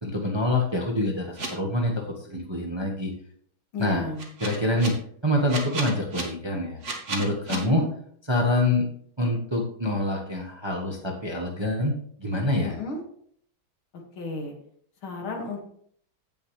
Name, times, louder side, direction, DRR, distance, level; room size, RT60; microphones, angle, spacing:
voice 1, 0.0-3.1 3.8-4.1 4.4-4.9 5.2-6.8 7.1-7.8 8.3-8.9 9.2-11.9 12.2-12.7, left 1 dB, 15° right, 0 dB, 1.0 m, -26 dB
sound 1, 1.4-1.5 4.2-4.9 5.5-6.2 6.8-7.6, right 3 dB, 35° right, 1.8 m, -32 dB
voice 2, 3.7-4.3 7.5-7.9 12.6-13.0 13.9-14.5 15.0-15.6, left 3 dB, 75° left, 2 dB, 2.7 m, -33 dB
16.0 x 6.4 x 3.2 m, 0.63 s
omnidirectional pair, 2.2 m